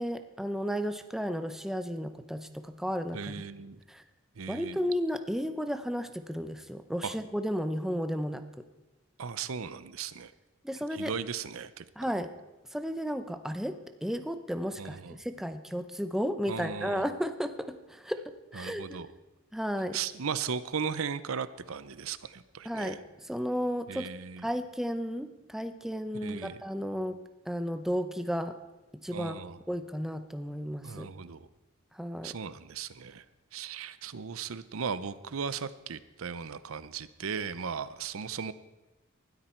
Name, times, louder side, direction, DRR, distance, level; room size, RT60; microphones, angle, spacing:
voice 1, 0.0-3.4 3.9-4.0 4.5-8.7 10.6-11.1 12.0-12.3 12.7-18.2 18.5-19.0 19.5-20.0 22.6-23.0 23.3-24.1 24.4-27.2 27.4-28.6 28.9-29.4 29.7-31.1 31.9-32.4, equal, ahead, 8 dB, 0.7 m, -33 dB
voice 2, 3.1-3.8 4.4-4.8 7.0-7.2 9.2-10.3 10.9-11.9 14.8-15.2 16.5-17.0 18.6-19.1 19.9-23.0 23.9-24.5 26.2-26.6 29.1-29.6 30.8-31.5 32.2-33.2 33.5-38.5, right 6 dB, 85° right, 15 dB, 0.7 m, -37 dB
19.5 x 13.0 x 4.5 m, 1.1 s
head